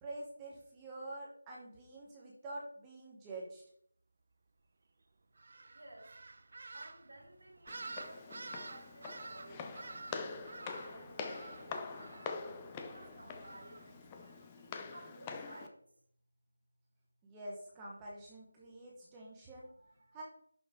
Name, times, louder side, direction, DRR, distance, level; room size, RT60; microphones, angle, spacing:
voice 1, 0.0-3.6 17.2-19.7 20.1-20.2, right 2 dB, 10° right, -4 dB, 0.9 m, -47 dB
sound 1, 5.4-14.4, right 3 dB, 40° right, 0.6 m, -50 dB
voice 2, 5.7-6.1 6.7-12.4 12.8-15.8 19.6-20.2, right 1 dB, 75° right, 3 dB, 3.4 m, -57 dB
Walk footsteps, 7.7-15.7, left 5 dB, 10° left, 0.5 m, -45 dB
11.0 x 5.9 x 3.6 m, 0.66 s
figure-of-eight pair, 175°, 0 cm